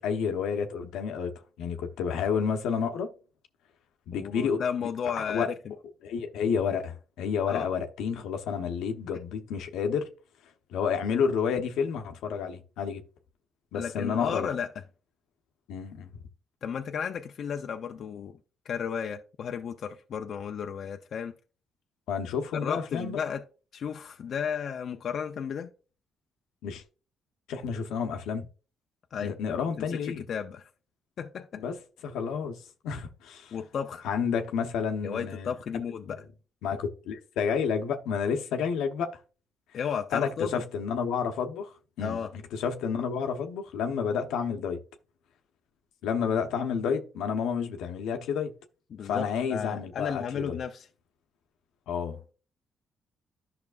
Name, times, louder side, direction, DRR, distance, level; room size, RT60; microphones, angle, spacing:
voice 1, 0.0-1.3 1.6-3.1 4.1-4.6 5.2-5.5 6.0-10.1 10.7-13.0 13.7-14.5 15.7-16.1 22.1-23.2 26.6-26.8 27.5-28.5 29.2-30.2 31.6-31.7 32.0-33.5 34.0-35.5 36.0-36.1 36.6-39.1 40.1-42.2 42.5-44.8 46.0-48.5 49.0-50.6 51.9-52.3, left 6 dB, 90° left, 0.9 m, -30 dB
voice 2, 4.1-5.5 7.5-7.7 13.7-14.7 16.6-18.4 18.7-21.3 22.6-23.4 23.7-25.7 29.1-29.6 30.0-30.7 31.2-31.6 33.5-34.1 35.0-36.2 39.7-40.6 42.0-42.3 48.9-50.9, left 7 dB, 60° left, 0.6 m, -33 dB
10.5 x 5.9 x 2.5 m
cardioid pair, 90°, 0 cm